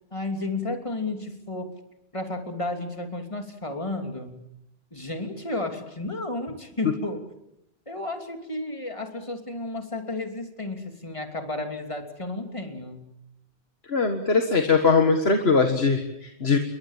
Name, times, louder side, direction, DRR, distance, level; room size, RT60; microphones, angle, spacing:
voice 1, 0.1-1.7 2.1-4.4 4.9-7.3 7.9-13.1, left 2 dB, 25° left, 5 dB, 3.0 m, -32 dB
voice 2, 13.9-16.6, left 4 dB, 60° left, 5 dB, 2.0 m, -21 dB
28.0 x 22.5 x 7.4 m, 0.83 s
omnidirectional pair, 1.2 m